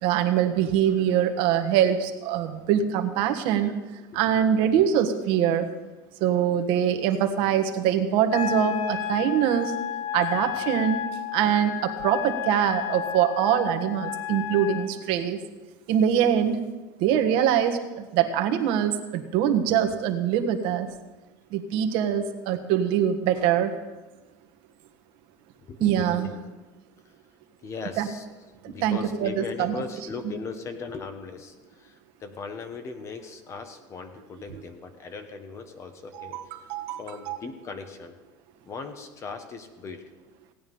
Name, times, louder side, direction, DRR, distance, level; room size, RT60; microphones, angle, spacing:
voice 1, 0.0-3.8 4.1-5.7 6.2-9.7 10.1-11.0 11.3-15.4 15.9-16.6 17.0-20.9 21.5-23.7 25.8-26.3 28.0-28.1 28.8-29.8 36.1-37.0 37.3-37.4, right 9 dB, 60° right, 6 dB, 1.5 m, -23 dB
Wind instrument woodwind instrument, 8.3-14.9, left 11 dB, 65° left, 2.4 m, -32 dB
voice 2, 25.6-26.4 27.6-28.2 28.6-36.5 37.0-38.2 38.6-40.0, left 4 dB, 30° left, 8 dB, 1.3 m, -38 dB
17.0 x 9.5 x 5.5 m, 1.2 s
supercardioid pair, 145°, 10 cm